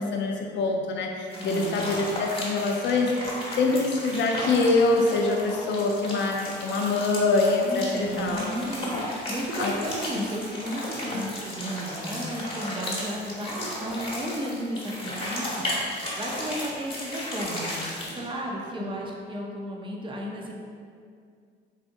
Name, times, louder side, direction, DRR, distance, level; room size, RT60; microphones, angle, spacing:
voice 1, 0.0-8.7 9.5-9.7 10.1-10.2 11.1-11.3 18.8-19.0, left 3 dB, 65° left, 1 dB, 0.4 m, -25 dB
sound 1, 1.3-18.2, left 1 dB, 30° left, 1.0 m, -34 dB
voice 2, 1.4-1.8 7.6-15.6 16.2-17.7 18.1-20.5, right 1 dB, 25° right, -1 dB, 0.5 m, -33 dB
4.0 x 2.5 x 2.5 m, 2.2 s
cardioid pair, 90°, 20 cm